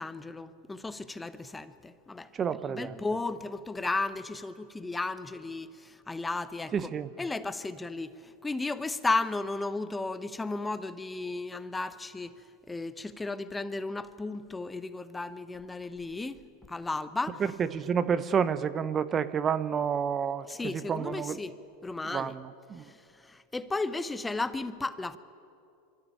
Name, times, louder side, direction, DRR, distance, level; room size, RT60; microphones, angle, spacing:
voice 1, 0.0-2.3 2.7-6.9 7.2-12.3 12.7-16.4 16.7-17.4 20.5-21.5 21.8-22.3 22.8-25.2, left 3 dB, 10° left, 0.8 m, -34 dB
voice 2, 2.3-3.0 6.7-7.1 17.6-21.4 22.0-22.9, right 7 dB, 30° right, 0.7 m, -30 dB
24.5 x 13.5 x 8.9 m
hypercardioid pair, 105°, 0 cm